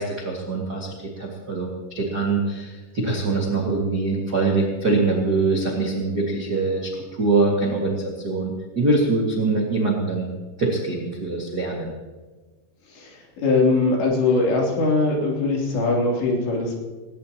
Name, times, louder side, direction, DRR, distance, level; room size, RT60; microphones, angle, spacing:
voice 1, 0.0-10.3 10.6-11.9, right 3 dB, 45° right, -3 dB, 1.3 m, -23 dB
voice 2, 12.9-16.8, left 3 dB, 75° left, -2 dB, 5.5 m, -21 dB
19.5 x 18.5 x 3.0 m, 1.3 s
omnidirectional pair, 5.2 m